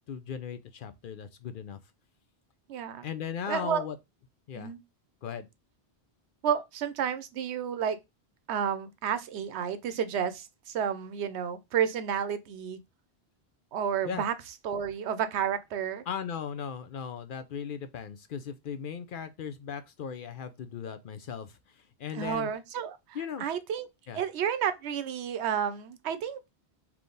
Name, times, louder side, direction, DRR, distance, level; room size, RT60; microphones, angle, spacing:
voice 1, 0.0-1.8 3.0-4.0 4.5-4.7 5.2-5.5 14.0-14.2 16.1-22.5 23.1-23.5 24.1-24.2, left 7 dB, 60° left, 0.6 m, -37 dB
voice 2, 2.7-3.1 3.5-3.8 4.5-4.8 6.4-8.0 8.5-12.8 13.7-14.3 14.6-16.0 22.1-23.0 23.4-23.9 24.1-26.4, right 8 dB, 90° right, 0.9 m, -31 dB
3.5 x 3.0 x 3.9 m
omnidirectional pair, 1.1 m